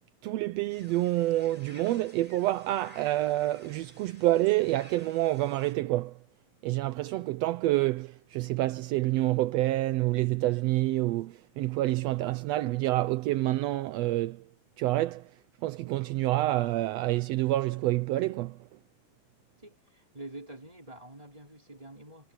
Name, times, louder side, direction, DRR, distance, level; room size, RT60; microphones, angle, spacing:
voice 1, 0.2-6.2 6.6-14.5 14.8-15.3 15.6-18.6, right 16 dB, 80° right, 1.5 m, -28 dB
sound 1, 0.7-5.7, left 1 dB, 10° left, 4.0 m, -55 dB
voice 2, 19.6-22.3, right 1 dB, 10° right, 4.9 m, -47 dB
omnidirectional pair, 3.6 m